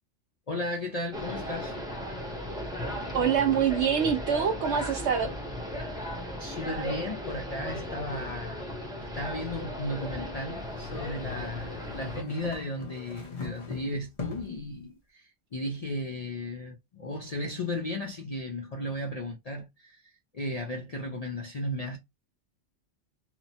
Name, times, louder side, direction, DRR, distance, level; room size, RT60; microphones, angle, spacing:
voice 1, 0.5-1.7 6.4-8.6 9.1-22.0, left 1 dB, 55° left, 0.4 m, -35 dB
sound 1, 1.1-12.2, equal, 5° right, 0.6 m, -36 dB
voice 2, 3.1-5.3, right 8 dB, 70° right, 0.8 m, -25 dB
sound 2, 10.6-14.6, left 5 dB, 30° left, 0.7 m, -40 dB
3.0 x 2.1 x 2.6 m
omnidirectional pair, 1.2 m